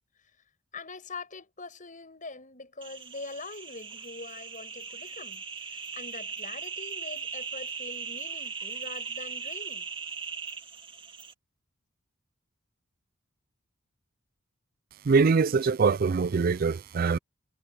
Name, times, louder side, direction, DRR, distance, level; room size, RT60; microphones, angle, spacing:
voice 1, 0.7-9.9, left 3 dB, 40° left, 7.3 m, -43 dB
sound 1, 2.8-11.3, right 6 dB, 25° right, 1.7 m, -39 dB
voice 2, 15.0-17.2, right 4 dB, 45° right, 0.4 m, -23 dB
head